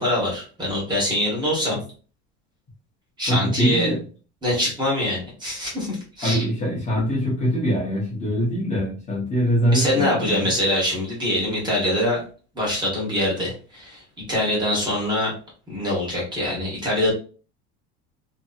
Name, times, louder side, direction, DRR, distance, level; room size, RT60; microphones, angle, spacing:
voice 1, 0.0-1.8 3.2-3.9 4.4-6.4 9.7-12.2 12.5-15.3 15.7-17.1, left 1 dB, 15° right, -4 dB, 1.2 m, -24 dB
voice 2, 3.3-4.0 6.2-10.5, equal, 20° left, -5 dB, 0.9 m, -23 dB
2.9 x 2.8 x 2.4 m, 0.38 s
cardioid pair, 170°, 31 cm